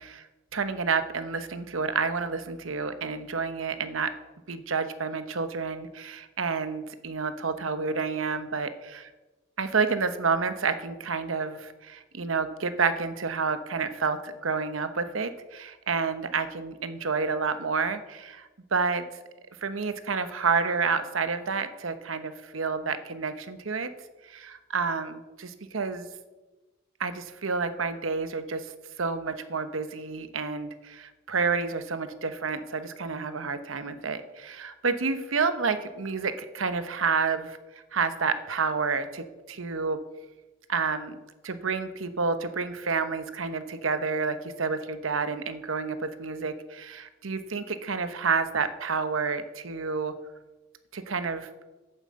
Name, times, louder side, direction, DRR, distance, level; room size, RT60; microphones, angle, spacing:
voice 1, 0.5-4.1 4.5-9.0 9.6-19.0 19.6-23.9 24.3-26.1 27.0-28.7 29.0-37.6 37.9-40.0 40.7-50.1 50.9-51.5, right 5 dB, 75° right, 10 dB, 1.0 m, -29 dB
9.0 x 7.8 x 7.5 m, 1.2 s
head